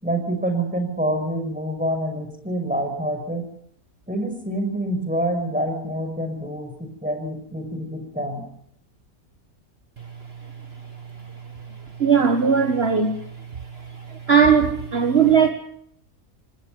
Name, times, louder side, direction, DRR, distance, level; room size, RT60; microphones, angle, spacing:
voice 1, 0.0-3.5 4.1-8.4, right 1 dB, 5° right, 5 dB, 5.7 m, -26 dB
voice 2, 12.0-13.3 13.8-15.5, right 6 dB, 45° right, 7 dB, 1.7 m, -18 dB
28.5 x 18.0 x 6.7 m, 0.69 s
omnidirectional pair, 1.5 m